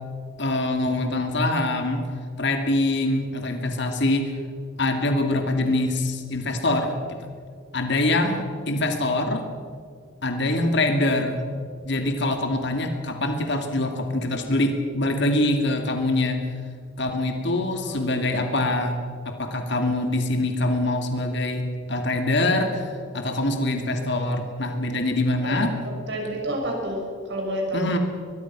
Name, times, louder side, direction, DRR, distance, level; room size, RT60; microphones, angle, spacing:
voice 1, 0.4-2.0 2.4-4.3 4.8-7.3 7.7-9.5 10.2-11.4 11.8-16.4 17.0-19.0 19.2-25.8 27.7-28.0, left 2 dB, 60° left, 4 dB, 2.5 m, -24 dB
voice 2, 17.7-18.0 18.3-18.6 25.4-27.9, right 1 dB, 60° right, 0 dB, 6.5 m, -30 dB
22.5 x 22.0 x 6.1 m, 2.1 s
head